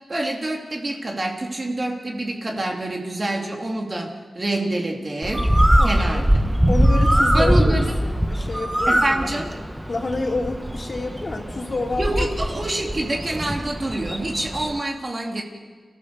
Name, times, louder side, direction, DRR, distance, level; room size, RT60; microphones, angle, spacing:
voice 1, 0.1-5.5 5.8-6.6 7.3-7.8 8.9-9.5 12.0-15.4, right 2 dB, 35° right, 1 dB, 3.5 m, -27 dB
Bird, 5.2-14.8, equal, 10° right, 1.4 m, -21 dB
voice 2, 5.8-6.3 6.7-12.4, left 2 dB, 45° left, 0 dB, 3.5 m, -29 dB
30.0 x 15.0 x 7.1 m, 1.4 s
wide cardioid pair, 75°, 0 cm